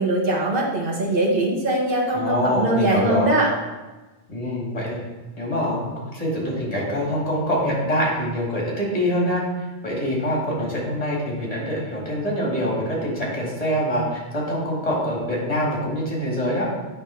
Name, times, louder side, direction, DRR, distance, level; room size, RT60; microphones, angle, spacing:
voice 1, 0.0-3.5, right 1 dB, 60° right, -3 dB, 1.5 m, -21 dB
voice 2, 2.1-3.4 4.3-5.0 5.4-9.4 9.8-16.8, equal, 35° left, -4 dB, 2.3 m, -25 dB
8.3 x 3.5 x 5.7 m, 1.2 s
omnidirectional pair, 1.0 m